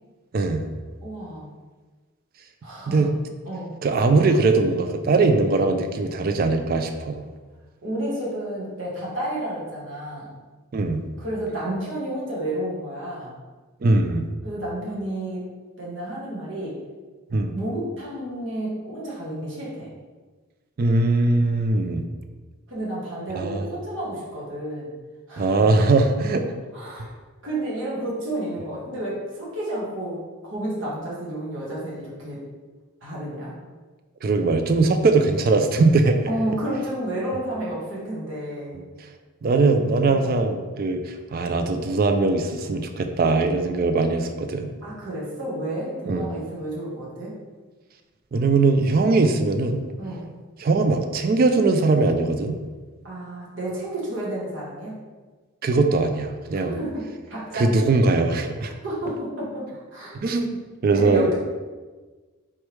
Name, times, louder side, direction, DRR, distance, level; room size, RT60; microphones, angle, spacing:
voice 1, 0.3-0.7 2.9-3.1 3.8-7.2 10.7-11.0 13.8-14.2 17.3-17.5 20.8-22.0 23.4-23.6 25.4-26.5 34.2-36.2 38.7-38.8 39.4-44.7 46.1-46.3 48.3-49.8 50.6-52.5 55.6-56.8 57.5-58.7 60.2-60.6 60.8-61.3, right 3 dB, 40° right, 6 dB, 0.3 m, -20 dB
voice 2, 1.0-1.5 2.6-3.1 3.4-3.7 7.8-10.3 11.2-13.3 14.4-15.4 15.8-16.8 17.5-19.9 22.7-24.9 25.3-25.7 26.7-27.1 27.4-32.4 33.0-33.6 36.2-38.8 40.0-40.3 44.8-47.3 50.0-50.3 53.0-54.9 56.6-57.7 58.8-60.2 60.9-61.4, right 1 dB, 60° right, -6 dB, 1.3 m, -31 dB
4.4 x 3.3 x 3.1 m, 1.3 s
head